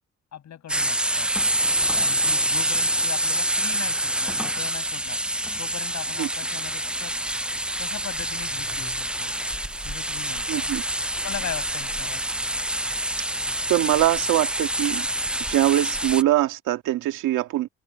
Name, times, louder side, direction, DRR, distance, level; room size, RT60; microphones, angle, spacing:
voice 1, 0.3-1.3 1.9-5.2 5.6-7.2 7.8-9.3 9.8-10.7 11.2-12.3, left 10 dB, 65° left, 7.9 m, -39 dB
sound 1, 0.7-16.2, right 1 dB, 5° right, 0.5 m, -26 dB
Wind, 6.6-13.6, left 5 dB, 35° left, 7.6 m, -51 dB
voice 2, 10.5-10.8 13.7-15.1 15.5-17.7, right 14 dB, 90° right, 2.2 m, -22 dB
cardioid pair, 90°, 30 cm